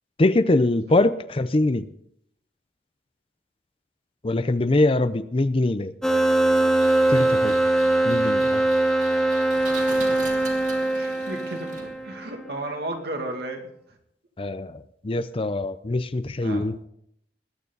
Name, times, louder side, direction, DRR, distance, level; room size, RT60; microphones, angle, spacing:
voice 1, 0.2-1.9 4.2-5.9 7.1-7.5 8.0-8.6 14.4-16.8, left 2 dB, 30° left, 13 dB, 0.6 m, -23 dB
sound 1, 6.0-12.4, right 2 dB, 5° left, 2.0 m, -22 dB
Engine, 6.5-12.2, right 4 dB, 45° right, 2.6 m, -41 dB
voice 2, 7.1-7.4 9.9-10.3 10.9-13.7 16.4-16.7, right 1 dB, 65° right, 3 dB, 2.3 m, -34 dB
20.5 x 9.5 x 4.0 m, 0.71 s
head